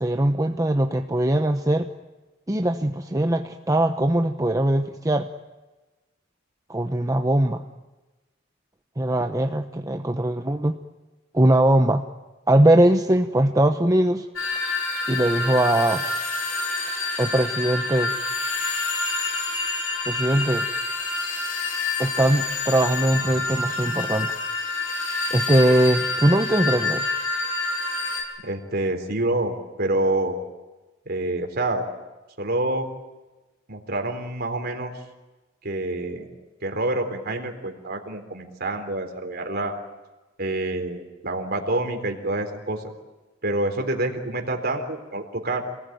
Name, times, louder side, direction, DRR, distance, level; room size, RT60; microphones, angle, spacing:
voice 1, 0.0-1.9 2.5-5.3 6.7-7.7 9.0-10.8 11.3-12.0 12.5-14.3 15.1-16.0 17.2-18.1 20.1-20.7 22.0-24.3 25.3-27.0, right 1 dB, 20° right, 5 dB, 0.9 m, -21 dB
sound 1, 14.4-28.2, left 3 dB, 90° left, 7.6 m, -27 dB
voice 2, 28.4-30.3 31.1-31.8 32.4-32.9 33.7-34.9 35.6-36.3 36.6-39.7 40.4-42.8 43.4-45.6, right 2 dB, 55° right, 5 dB, 3.8 m, -27 dB
28.0 x 20.0 x 9.3 m, 1.2 s
head